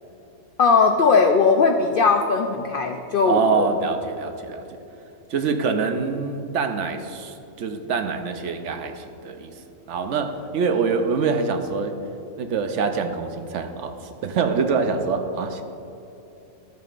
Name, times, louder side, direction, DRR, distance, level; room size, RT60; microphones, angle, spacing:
voice 1, 0.6-3.7, left 4 dB, 90° left, 4 dB, 0.4 m, -18 dB
voice 2, 3.2-4.8 5.3-12.0 12.4-15.6, right 5 dB, 65° right, 7 dB, 0.9 m, -25 dB
12.5 x 8.0 x 2.5 m, 3.0 s
omnidirectional pair, 1.5 m